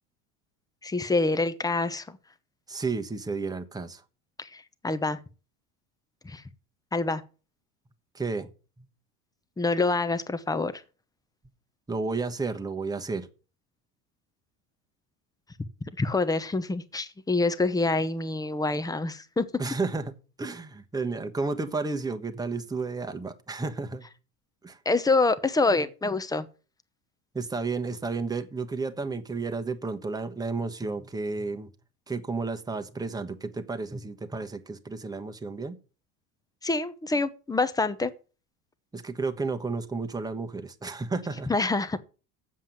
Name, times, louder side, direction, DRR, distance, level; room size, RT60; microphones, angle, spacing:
voice 1, 0.8-2.2 4.4-5.2 6.2-6.4 6.9-7.2 9.6-10.7 16.0-19.4 24.8-26.5 36.6-38.1 41.5-42.0, left 3 dB, 10° left, 0.9 m, -26 dB
voice 2, 2.7-4.0 8.1-8.5 11.9-13.3 19.6-24.0 24.6-24.8 27.3-31.7 32.1-35.8 38.9-41.5, right 3 dB, 10° right, 1.2 m, -32 dB
7.7 x 7.5 x 7.5 m
supercardioid pair, 120°, 40 cm